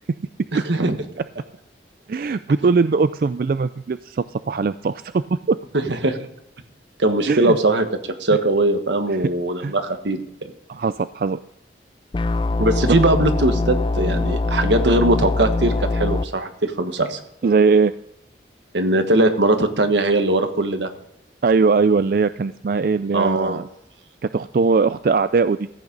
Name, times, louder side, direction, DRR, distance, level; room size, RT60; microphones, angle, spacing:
voice 1, 0.5-1.0 5.9-6.2 7.0-7.9 8.2-10.5 12.6-17.2 18.7-20.9 23.1-23.6, right 2 dB, 85° right, 7 dB, 1.5 m, -20 dB
voice 2, 2.1-5.6 7.3-7.6 9.6-9.7 10.7-11.4 17.4-17.9 21.4-23.7 24.2-25.7, right 4 dB, 55° right, 13 dB, 0.3 m, -20 dB
sound 1, 12.1-16.2, left 2 dB, 25° left, 0.4 m, -22 dB
14.5 x 8.7 x 5.2 m, 0.76 s
head